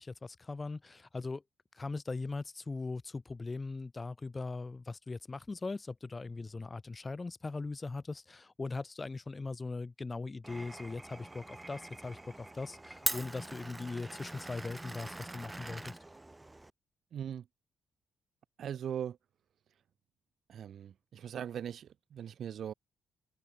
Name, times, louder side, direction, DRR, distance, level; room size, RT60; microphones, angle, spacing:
voice 1, 0.0-1.4 1.7-16.0, left 3 dB, 25° left, 4.0 m, -40 dB
Glass, 10.4-16.7, right 2 dB, 15° right, 0.8 m, -42 dB
voice 2, 17.1-17.4 18.6-19.2 20.5-22.7, right 9 dB, 55° right, 0.8 m, -40 dB
figure-of-eight pair, 40°, 0 cm